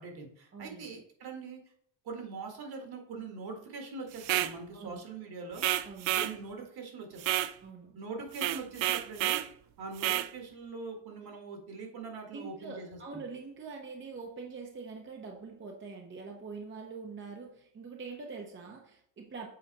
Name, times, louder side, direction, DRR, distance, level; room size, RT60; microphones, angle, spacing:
voice 1, 0.0-1.6 2.0-5.7 6.2-7.2 7.9-9.4 9.8-13.2, right 4 dB, 55° right, 2 dB, 1.9 m, -42 dB
voice 2, 0.5-0.9 4.7-5.0 5.8-6.2 7.6-8.0 12.3-19.5, right 4 dB, 25° right, 1 dB, 0.8 m, -44 dB
sound 1, 4.2-4.5 5.6-6.3 7.2-7.5 8.3-9.5 10.0-10.3, right 14 dB, 80° right, 0.6 m, -30 dB
7.7 x 4.1 x 4.1 m, 0.66 s
cardioid pair, 130°, 45 cm